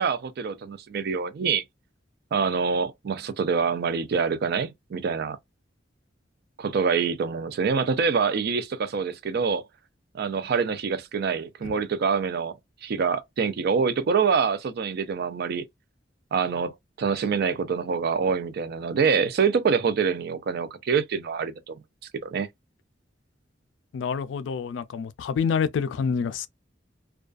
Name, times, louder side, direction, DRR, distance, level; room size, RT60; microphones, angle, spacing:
voice 1, 0.0-1.6 2.3-5.4 6.6-9.6 10.1-12.5 12.8-15.7 16.3-21.8 22.2-22.5, right 5 dB, 55° right, 0.4 m, -25 dB
voice 2, 23.9-26.5, left 6 dB, 75° left, 0.3 m, -27 dB
2.3 x 2.2 x 2.4 m
head